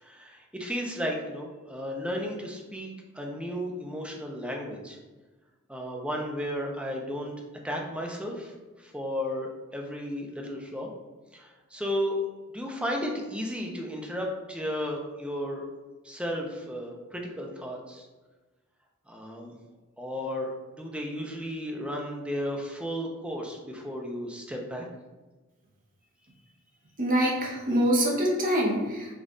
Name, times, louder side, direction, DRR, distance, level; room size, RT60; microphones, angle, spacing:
voice 1, 0.0-2.9 3.1-5.0 5.7-7.3 7.6-10.9 11.3-12.2 12.5-15.6 16.0-18.1 19.1-19.5 20.0-24.8, equal, 5° right, 0 dB, 0.6 m, -34 dB
voice 2, 27.0-29.1, equal, 40° right, -2 dB, 1.1 m, -25 dB
5.2 x 2.5 x 3.8 m, 1.2 s
head